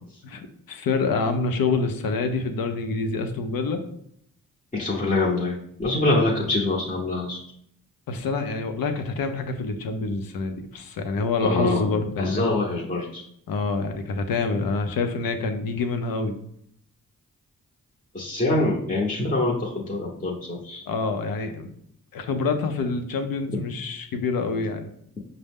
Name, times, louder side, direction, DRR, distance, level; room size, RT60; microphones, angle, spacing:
voice 1, 0.2-3.8 8.1-12.6 13.5-16.3 20.9-21.7 22.1-24.9, left 4 dB, 80° left, 7 dB, 0.6 m, -26 dB
voice 2, 4.7-7.4 11.4-11.9 12.2-13.2 18.1-20.8, left 2 dB, 25° left, -4 dB, 0.8 m, -25 dB
5.2 x 2.0 x 3.5 m, 0.70 s
cardioid pair, 60°, 35 cm